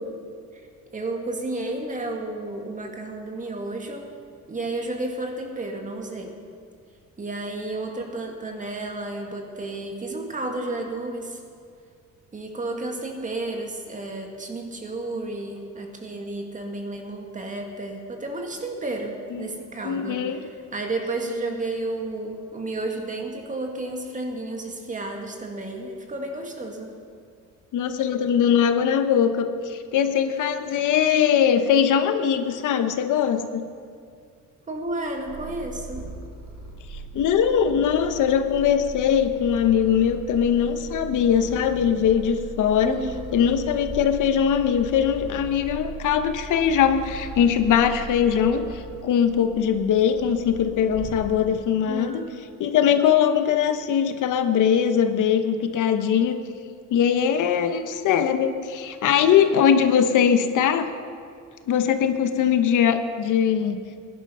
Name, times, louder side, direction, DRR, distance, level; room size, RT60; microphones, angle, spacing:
voice 1, 0.9-4.0 4.5-6.3 7.2-11.4 12.3-26.9 34.7-36.1 42.8-43.3 51.8-52.4, right 2 dB, 25° right, 2 dB, 1.9 m, -32 dB
voice 2, 19.8-20.4 27.7-33.6 37.1-43.0 43.3-52.2 52.6-56.4 56.9-60.9 61.7-63.8, left 8 dB, 70° left, 8 dB, 1.0 m, -21 dB
Purr, 34.9-51.7, right 3 dB, 60° right, 2.7 m, -39 dB
19.0 x 11.0 x 5.5 m, 2.2 s
cardioid pair, 150°, 31 cm